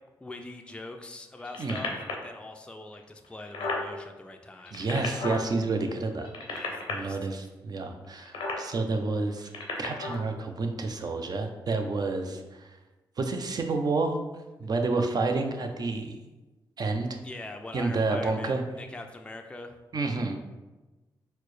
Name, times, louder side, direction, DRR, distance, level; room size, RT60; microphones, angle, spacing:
voice 1, 0.2-2.0 2.2-4.8 6.5-7.3 17.2-19.8, left 2 dB, 10° left, 4 dB, 0.4 m, -43 dB
sound 1, 1.4-2.3 2.9-3.0 3.2-3.9 4.5-5.4 6.2-6.9 8.2-8.6 9.4-10.2 11.0-11.1, left 3 dB, 80° left, 0.6 m, -33 dB
voice 2, 4.7-6.3 6.9-9.5 9.8-12.7 13.2-14.2 14.6-16.2 16.8-17.2 17.7-18.6 19.9-20.4, right 3 dB, 50° right, 5 dB, 0.5 m, -29 dB
4.3 x 2.0 x 3.2 m, 1.1 s
supercardioid pair, 50°, 9 cm